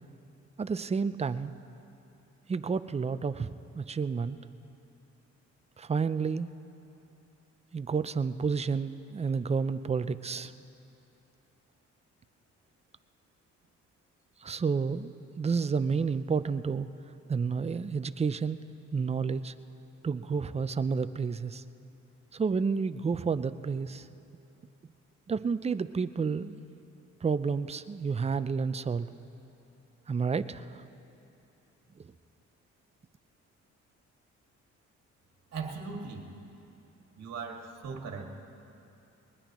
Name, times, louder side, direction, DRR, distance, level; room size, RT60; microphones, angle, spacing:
voice 1, 0.6-1.5 2.5-4.4 5.8-6.5 7.7-10.5 14.4-16.9 17.3-18.6 18.9-19.5 20.0-21.6 22.3-24.1 25.3-26.6 27.2-29.1 30.1-30.8 32.0-32.1, right 5 dB, 20° right, 12 dB, 0.5 m, -30 dB
voice 2, 35.5-36.3 37.2-38.3, right 5 dB, 60° right, 1 dB, 2.1 m, -39 dB
21.5 x 19.5 x 3.1 m, 2.8 s
cardioid pair, 90°, 30 cm